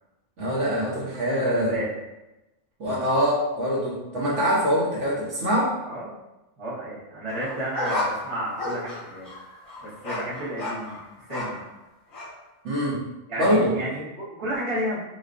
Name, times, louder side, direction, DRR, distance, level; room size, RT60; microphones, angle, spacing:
voice 1, 0.4-1.8 2.8-5.7 12.6-13.0 13.4-13.7, equal, 60° right, -5 dB, 1.1 m, -24 dB
voice 2, 1.2-1.9 5.8-6.2 6.6-9.3 9.8-11.6 13.3-15.0, equal, 30° right, -8 dB, 0.7 m, -32 dB
sound 1, 7.3-11.7 12.1-12.3, left 2 dB, 80° left, 1.6 m, -33 dB
4.2 x 2.1 x 2.5 m, 0.97 s
omnidirectional pair, 1.5 m